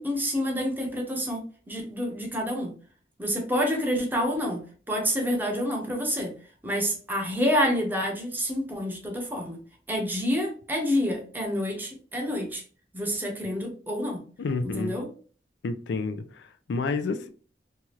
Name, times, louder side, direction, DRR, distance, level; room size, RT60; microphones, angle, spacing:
voice 1, 0.0-2.7 3.2-4.6 4.9-6.3 6.6-9.6 9.9-12.6 12.9-14.2 14.6-15.1, equal, 10° right, 1 dB, 0.6 m, -28 dB
voice 2, 14.4-15.0 15.6-17.3, left 4 dB, 80° left, 9 dB, 0.4 m, -30 dB
2.8 x 2.3 x 2.9 m, 0.41 s
head